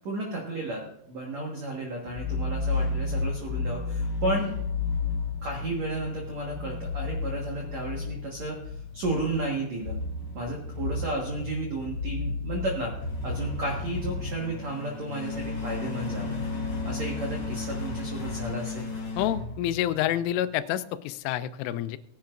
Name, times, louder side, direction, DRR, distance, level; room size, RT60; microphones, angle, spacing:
voice 1, 0.0-0.8 1.1-4.5 5.4-8.6 8.9-10.0 10.3-12.9 13.2-16.4 16.8-18.9, right 2 dB, 75° right, -1 dB, 1.6 m, -33 dB
sound 1, 2.1-20.2, left 3 dB, 25° left, 3.2 m, -33 dB
voice 2, 19.2-22.0, left 12 dB, 85° left, 14 dB, 3.0 m, -28 dB
19.0 x 10.5 x 2.5 m, 0.76 s
omnidirectional pair, 5.6 m